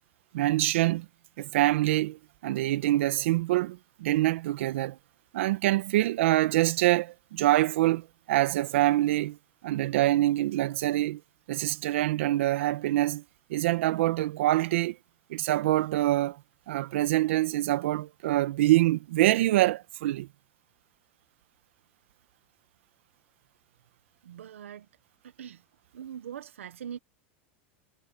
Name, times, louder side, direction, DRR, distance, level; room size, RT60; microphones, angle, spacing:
voice 1, 0.3-1.1 1.4-5.0 5.3-9.4 9.6-11.2 11.5-13.2 13.5-15.0 15.3-16.4 16.7-20.3, right 16 dB, 70° right, 1.8 m, -25 dB
voice 2, 24.2-24.9 25.2-25.6 25.9-27.0, right 9 dB, 90° right, 1.4 m, -42 dB
hypercardioid pair, 120°, 7 cm